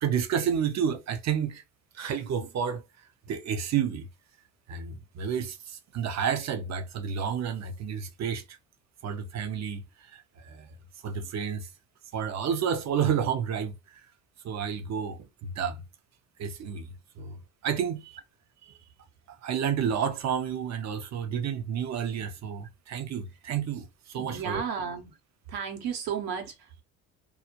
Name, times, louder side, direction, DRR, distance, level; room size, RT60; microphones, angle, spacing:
voice 1, 0.0-1.6 1.9-2.8 3.3-4.1 4.7-8.4 9.0-10.7 11.0-11.7 12.1-14.0 14.4-15.8 16.4-16.9 17.2-18.0 19.3-24.6, right 7 dB, 45° right, 0.7 m, -30 dB
voice 2, 24.2-25.2 25.5-26.8, right 7 dB, 70° right, 1.0 m, -34 dB
2.3 x 2.1 x 2.8 m
hypercardioid pair, 60°, 38 cm